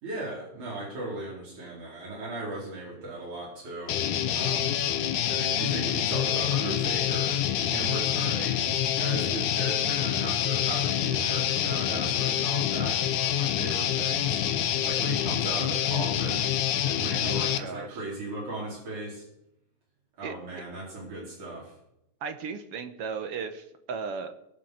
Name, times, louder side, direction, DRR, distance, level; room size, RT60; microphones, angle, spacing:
voice 1, 0.0-4.0 4.3-4.8 5.3-7.4 7.7-8.6 9.0-16.5 16.8-19.3 20.2-21.8, right 2 dB, 75° right, -6 dB, 6.0 m, -37 dB
Guitar, 3.9-17.6, left 10 dB, 90° left, 2.5 m, -27 dB
voice 2, 17.2-18.0 20.2-20.3 22.2-24.3, right 5 dB, 60° right, 9 dB, 1.9 m, -36 dB
22.5 x 7.6 x 6.5 m, 0.80 s
omnidirectional pair, 3.4 m